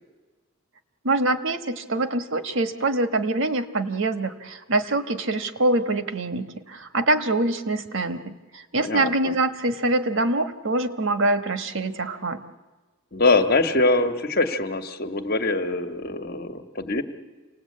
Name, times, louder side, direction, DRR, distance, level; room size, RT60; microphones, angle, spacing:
voice 1, 1.0-12.4, right 2 dB, 65° right, 9 dB, 1.3 m, -24 dB
voice 2, 8.8-9.3 13.1-17.0, left 2 dB, 45° left, 6 dB, 1.4 m, -23 dB
28.0 x 19.0 x 8.6 m, 1.2 s
head